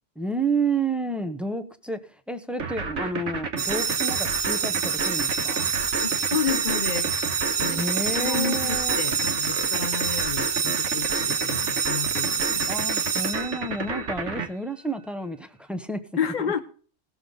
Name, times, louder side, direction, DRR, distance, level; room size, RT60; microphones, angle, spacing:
voice 1, 0.2-5.7 7.6-9.0 12.7-16.5, right 3 dB, ahead, 0.7 m, -30 dB
sound 1, 2.6-14.5, right 4 dB, 75° right, 1.6 m, -31 dB
sound 2, 3.6-14.0, right 6 dB, 50° right, 0.7 m, -27 dB
voice 2, 6.0-7.1 7.6-12.7 16.2-16.6, left 7 dB, 45° left, 0.7 m, -31 dB
18.0 x 6.9 x 3.9 m
omnidirectional pair, 1.3 m